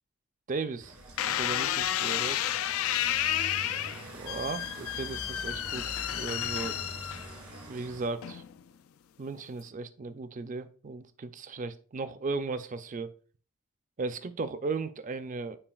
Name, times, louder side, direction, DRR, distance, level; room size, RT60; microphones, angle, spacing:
voice 1, 0.5-2.4 4.1-6.8 7.7-8.4 9.2-13.1 14.0-15.6, right 3 dB, 35° right, 12 dB, 0.4 m, -36 dB
sound 1, 0.8-8.1, right 1 dB, 90° right, 2.9 m, -45 dB
sound 2, 1.2-7.6 8.2-8.7, left 11 dB, 65° left, 0.3 m, -31 dB
8.8 x 4.7 x 2.3 m, 0.41 s
head